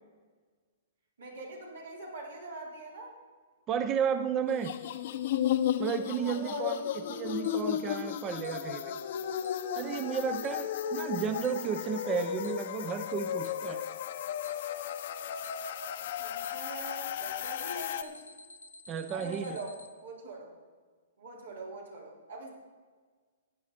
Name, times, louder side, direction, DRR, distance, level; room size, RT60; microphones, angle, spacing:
voice 1, 1.2-3.2 6.2-7.0 16.2-18.2 19.1-20.5 21.2-22.5, right 2 dB, 85° right, -3 dB, 4.4 m, -43 dB
voice 2, 3.7-4.7 5.8-6.8 7.1-8.8 9.8-13.8 18.9-19.6, right 7 dB, 25° right, 10 dB, 0.6 m, -33 dB
sound 1, 4.5-18.0, left 10 dB, 60° left, 0.8 m, -34 dB
Alarm, 7.4-7.5 8.4-8.5 9.4-9.5 10.4-10.5 11.4-11.5 12.4-12.5 13.4-13.5 14.4-14.5 15.4-15.5 16.4-16.5 17.4-19.9, left 2 dB, 90° left, 0.9 m, -50 dB
15.0 x 9.4 x 4.4 m, 1.5 s
hypercardioid pair, 125°, 0 cm